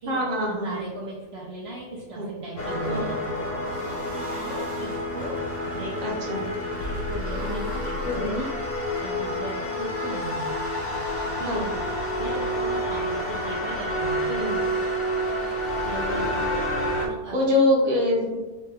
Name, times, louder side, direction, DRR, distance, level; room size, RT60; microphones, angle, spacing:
voice 1, 0.1-0.9 2.1-2.3 2.8-3.0 6.0-6.4 8.0-8.4 11.5-11.7 14.3-14.5 17.3-18.4, left 1 dB, 40° right, -2 dB, 1.0 m, -24 dB
voice 2, 0.6-3.4 4.4-6.2 6.6-8.5 9.0-10.7 11.4-11.6 12.1-14.4 15.8-16.7 17.0-17.6, right 2 dB, 55° right, -5 dB, 0.7 m, -37 dB
sound 1, 2.6-17.1, equal, 45° left, 0.9 m, -29 dB
sound 2, 3.6-5.1 6.9-8.3 14.1-14.9 15.6-16.7, right 1 dB, 75° right, 1.5 m, -42 dB
sound 3, 6.8-9.5, left 3 dB, 70° left, 1.3 m, -36 dB
5.7 x 2.1 x 3.4 m, 1.1 s
omnidirectional pair, 1.7 m